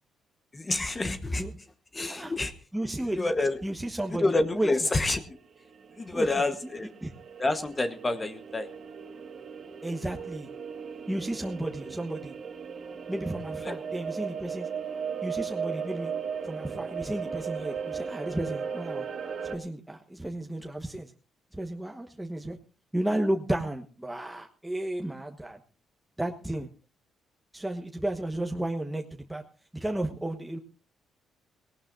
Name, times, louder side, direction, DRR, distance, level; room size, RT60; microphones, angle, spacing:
voice 1, 0.5-1.4 1.9-2.5 3.0-3.6 4.1-5.2 6.0-6.9 7.4-8.7 13.6-13.8, left 2 dB, 25° left, 9 dB, 1.1 m, -28 dB
voice 2, 2.7-3.2 3.6-4.2 4.5-4.7 6.1-6.5 7.0-7.1 9.8-10.5 11.1-12.3 13.1-14.7 15.2-16.1 16.4-19.0 19.4-21.1 21.5-22.6 22.9-25.6 26.2-26.7 27.5-29.4 29.7-30.6, right 1 dB, 5° right, 2 dB, 1.2 m, -33 dB
sound 1, 5.1-5.2 5.4-5.5 5.8-19.6, right 6 dB, 55° right, 2.2 m, -37 dB
19.5 x 18.0 x 2.6 m, 0.34 s
cardioid pair, 90°, 0 cm